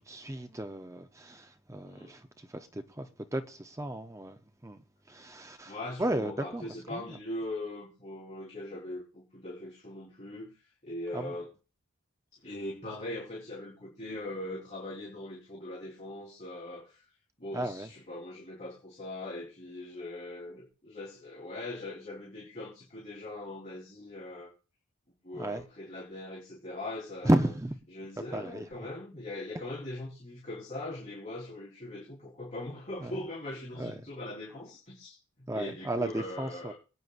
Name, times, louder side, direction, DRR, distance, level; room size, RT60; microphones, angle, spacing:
voice 1, 0.0-2.3 2.5-4.8 5.1-7.0 11.1-11.3 17.5-17.9 25.4-25.6 27.2-27.8 28.3-28.7 33.0-33.1 33.8-33.9 35.5-36.7, right 1 dB, 15° right, 0.7 m, -33 dB
voice 2, 5.7-10.5 10.8-11.5 12.4-17.0 17.4-24.5 25.2-27.5 27.9-36.7, left 1 dB, 35° left, 3.7 m, -41 dB
24.0 x 9.5 x 2.5 m
head